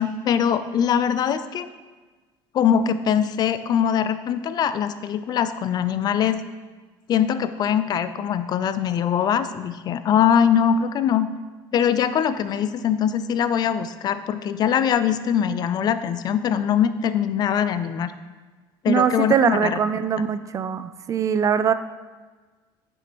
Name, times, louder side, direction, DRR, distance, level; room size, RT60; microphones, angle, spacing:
voice 1, 0.0-1.7 2.5-6.4 7.1-11.3 11.7-18.1 18.8-20.1, left 8 dB, 40° left, 12 dB, 0.4 m, -22 dB
voice 2, 18.9-21.7, right 7 dB, 30° right, 12 dB, 0.3 m, -22 dB
9.4 x 6.2 x 3.0 m, 1.3 s
cardioid pair, 120°, 10 cm